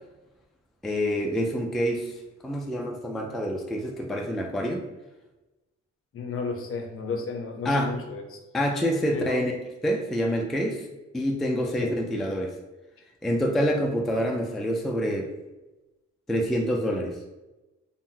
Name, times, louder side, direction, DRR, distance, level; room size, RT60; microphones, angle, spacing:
voice 1, 0.8-2.1 2.4-4.8 7.6-8.0 8.5-9.5 9.8-10.9 11.1-12.6 13.2-15.3 16.3-17.2, equal, ahead, 0 dB, 0.3 m, -27 dB
voice 2, 6.1-8.4 9.1-9.4 11.8-12.0, left 4 dB, 45° left, 3 dB, 0.6 m, -33 dB
2.6 x 2.1 x 3.6 m, 1.1 s
cardioid pair, 90°, 30 cm